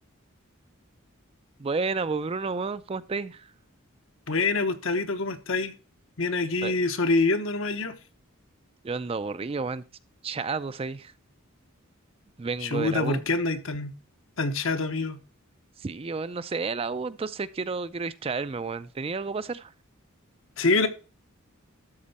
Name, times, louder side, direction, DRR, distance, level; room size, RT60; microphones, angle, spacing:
voice 1, 1.6-3.4 6.6-6.7 8.8-9.8 10.2-11.1 12.4-13.2 15.8-19.7, right 4 dB, 25° right, 0.4 m, -31 dB
voice 2, 4.3-5.7 6.2-7.9 12.6-13.9 14.4-15.2 20.6-20.9, left 3 dB, 70° left, 1.1 m, -26 dB
12.5 x 4.5 x 4.2 m
head